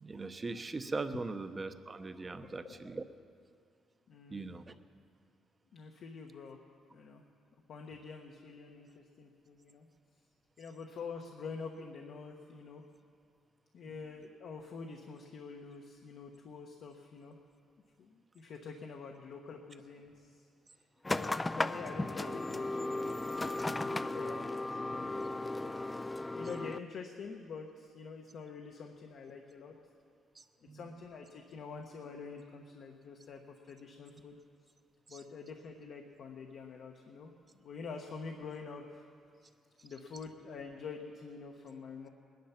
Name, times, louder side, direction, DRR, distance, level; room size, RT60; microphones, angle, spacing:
voice 1, 0.0-3.1 4.3-4.8 13.9-14.0 21.5-21.7 30.4-30.8 35.1-35.2, right 3 dB, 30° right, 10 dB, 0.8 m, -40 dB
voice 2, 2.4-2.8 4.1-4.5 5.7-6.6 6.9-7.2 7.7-9.9 10.6-12.8 13.7-17.4 18.0-20.4 21.1-25.8 26.3-29.8 30.7-34.4 35.1-39.0 39.3-39.4 39.8-42.1, left 5 dB, 65° left, 2 dB, 1.1 m, -47 dB
sound 1, 21.0-26.8, left 2 dB, 15° left, 0.4 m, -35 dB
20.0 x 10.5 x 5.8 m, 2.3 s
cardioid pair, 90°, 0 cm